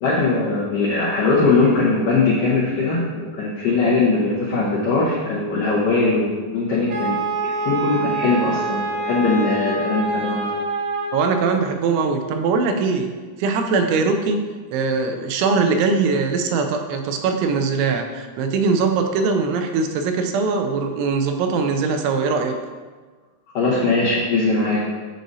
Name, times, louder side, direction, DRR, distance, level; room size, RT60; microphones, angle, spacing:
voice 1, 0.0-7.2 7.4-10.5 23.5-24.9, left 3 dB, 85° left, -8 dB, 1.9 m, -20 dB
Wind instrument woodwind instrument, 6.9-11.4, right 3 dB, 45° right, 1.5 m, -26 dB
voice 2, 11.1-13.1 13.4-14.4 14.7-22.5, right 4 dB, 90° right, 5 dB, 3.0 m, -21 dB
7.5 x 6.2 x 2.7 m, 1.4 s
omnidirectional pair, 5.2 m